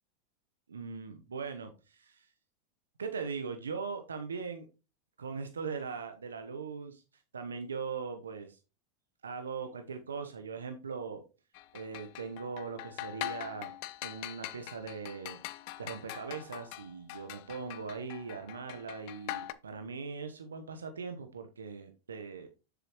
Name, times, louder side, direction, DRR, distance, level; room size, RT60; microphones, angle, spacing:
voice 1, 0.7-2.3 3.0-4.7 5.2-8.6 9.2-11.2 11.7-13.7 14.0-15.4 15.8-22.5, right 5 dB, 90° right, 7 dB, 0.9 m, -40 dB
sound 1, 11.5-19.5, left 15 dB, 60° left, 0.7 m, -43 dB
7.3 x 7.1 x 3.0 m, 0.30 s
hypercardioid pair, 95°, 0 cm